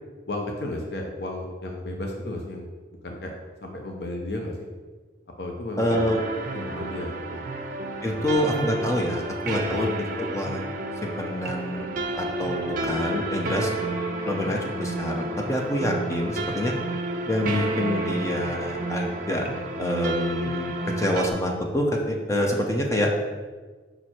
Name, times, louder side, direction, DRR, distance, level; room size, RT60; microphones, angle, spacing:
voice 1, 0.3-2.7 3.0-3.3 3.6-4.7 5.4-6.1 6.5-7.5 8.2-8.3 9.7-9.9, left 1 dB, 65° left, 1 dB, 0.7 m, -33 dB
voice 2, 5.8-6.2 8.0-9.9 10.2-10.7 11.0-11.9 12.2-13.7 14.3-16.7 17.3-19.5 19.8-23.1, equal, 15° left, 1 dB, 0.7 m, -26 dB
sound 1, 5.9-21.3, right 2 dB, 50° right, 0.6 m, -31 dB
5.5 x 4.5 x 4.4 m, 1.4 s
head